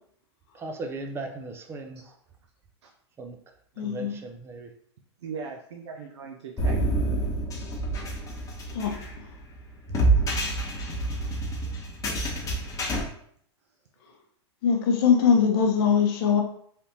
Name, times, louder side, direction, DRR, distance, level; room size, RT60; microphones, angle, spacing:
voice 1, 0.5-2.0 3.2-3.4 3.8-4.7, right 3 dB, 15° right, 4 dB, 0.5 m, -37 dB
voice 2, 3.8-4.2 8.7-8.9 14.6-16.4, left 6 dB, 55° left, 4 dB, 0.7 m, -21 dB
voice 3, 5.2-7.2 9.8-10.0 11.6-11.7, right 5 dB, 80° right, 2 dB, 0.5 m, -40 dB
sound 1, 6.6-13.0, right 2 dB, 25° left, 0.9 m, -27 dB
3.4 x 2.5 x 2.7 m, 0.63 s
hypercardioid pair, 110°, 14 cm